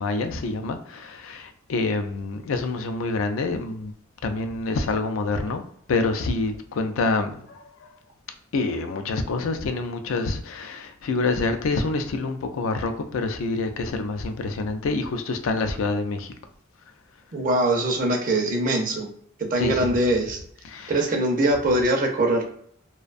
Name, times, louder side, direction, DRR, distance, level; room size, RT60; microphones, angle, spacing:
voice 1, 0.0-3.9 4.2-5.6 5.9-7.9 8.5-16.3 19.6-19.9 20.6-20.9, left 3 dB, 80° left, 0.4 m, -27 dB
voice 2, 17.3-19.1 19.5-20.4 20.9-22.4, right 1 dB, 40° right, 0.5 m, -22 dB
2.5 x 2.1 x 2.4 m
head